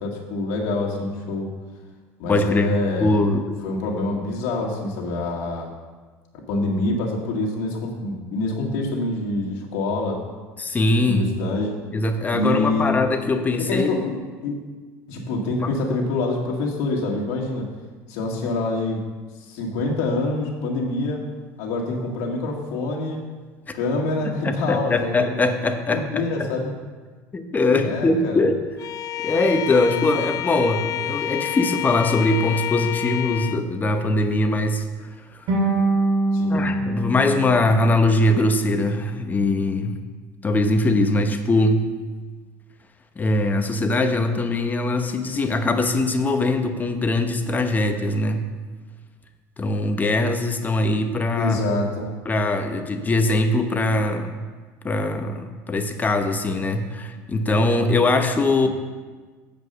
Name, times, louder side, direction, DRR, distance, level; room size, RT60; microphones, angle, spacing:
voice 1, 0.0-1.5 2.2-3.2 3.6-5.7 6.5-10.2 11.0-11.8 12.3-13.0 13.6-14.1 14.4-14.6 15.1-17.7 18.1-19.0 19.4-21.2 21.6-23.2 23.7-25.4 25.9-26.7 27.8-28.4 36.3-36.7 51.4-52.1, left 2 dB, 75° left, -1 dB, 1.9 m, -26 dB
voice 2, 2.3-2.7 3.0-3.6 10.6-11.2 11.9-14.0 15.6-15.7 23.7-23.8 24.4-26.5 27.3-28.6 29.2-34.8 36.5-40.0 40.4-41.9 43.2-48.5 49.6-51.6 52.3-54.3 54.8-58.7, left 2 dB, 20° left, 7 dB, 0.9 m, -21 dB
Bowed string instrument, 28.8-33.7, left 13 dB, 50° left, 0.4 m, -29 dB
sound 1, 35.5-38.6, right 2 dB, 60° right, 2.8 m, -24 dB
8.0 x 5.2 x 6.7 m, 1.4 s
supercardioid pair, 100°, 8 cm